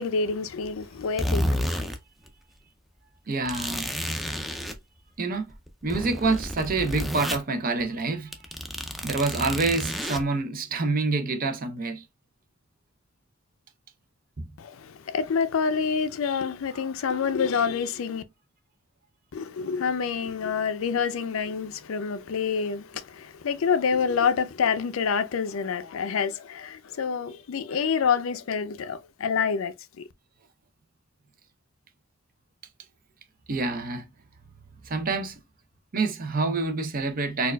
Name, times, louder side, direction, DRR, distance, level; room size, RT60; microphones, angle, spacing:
voice 1, 0.0-1.7 14.6-18.2 19.3-30.0, left 6 dB, 80° left, 0.4 m, -27 dB
sound 1, 1.0-2.0 2.3-2.4 3.5-4.8 5.3-7.4 7.8-8.0 8.3-10.2, equal, ahead, 0.4 m, -30 dB
voice 2, 3.3-3.9 5.2-5.5 5.8-8.4 9.0-12.0 14.4-14.5 16.7-16.8 33.5-34.1 34.8-35.4 35.9-37.5, right 3 dB, 45° right, 0.6 m, -27 dB
4.3 x 2.3 x 2.2 m
head